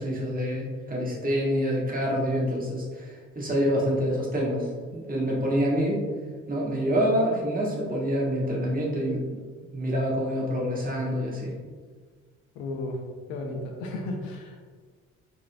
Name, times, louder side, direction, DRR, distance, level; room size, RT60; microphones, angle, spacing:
voice 1, 0.0-6.0 6.5-9.2 9.7-11.5, equal, 25° right, -4 dB, 1.3 m, -27 dB
voice 2, 12.5-13.0 13.3-14.7, left 2 dB, 70° left, 1 dB, 0.7 m, -34 dB
4.0 x 3.9 x 2.2 m, 1.5 s
figure-of-eight pair, 45°, 37 cm